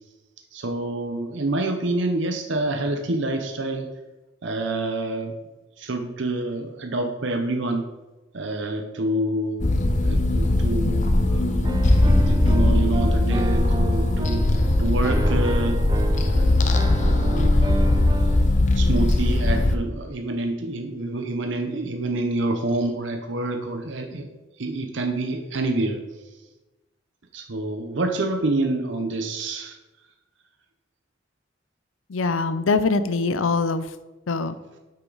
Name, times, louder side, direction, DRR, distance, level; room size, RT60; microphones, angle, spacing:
voice 1, 0.5-3.9 4.4-5.3 5.8-7.8 8.3-9.6 10.0-11.7 12.0-14.4 14.8-15.8 16.2-17.6 18.7-24.3 24.6-26.0 27.3-29.8, right 2 dB, 65° right, 5 dB, 0.8 m, -27 dB
sound 1, 9.6-19.7, left 1 dB, 35° left, 0.6 m, -20 dB
Piano, 11.6-18.5, right 2 dB, 20° right, 0.3 m, -31 dB
voice 2, 32.1-33.9 34.3-34.6, left 4 dB, 80° left, 12 dB, 0.6 m, -23 dB
9.0 x 5.9 x 3.9 m, 1.1 s
head